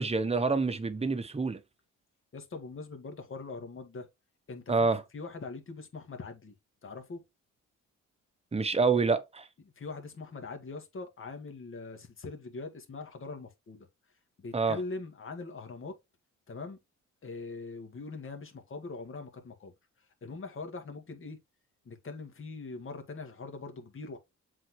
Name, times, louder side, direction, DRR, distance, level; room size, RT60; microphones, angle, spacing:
voice 1, 0.0-1.6 4.7-5.0 8.5-9.5 14.5-14.8, right 4 dB, 20° right, 1.1 m, -27 dB
voice 2, 2.3-4.1 4.5-4.9 5.1-6.5 6.8-7.2 9.8-13.9 14.4-15.9 16.5-16.8 17.2-19.7 20.2-21.4 21.9-24.2, left 3 dB, 45° left, 2.1 m, -42 dB
7.5 x 4.0 x 3.2 m
cardioid pair, 90°, 30 cm